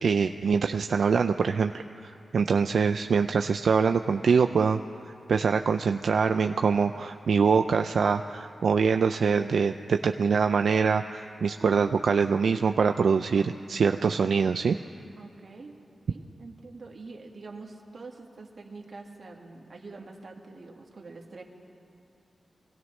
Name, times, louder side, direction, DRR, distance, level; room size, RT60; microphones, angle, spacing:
voice 1, 0.0-4.8 5.3-14.8, right 5 dB, 75° right, 6 dB, 0.3 m, -24 dB
voice 2, 15.2-15.8 16.1-21.4, right 3 dB, 50° right, -1 dB, 1.8 m, -45 dB
24.0 x 17.5 x 3.2 m, 2.5 s
wide cardioid pair, 105°, 0 cm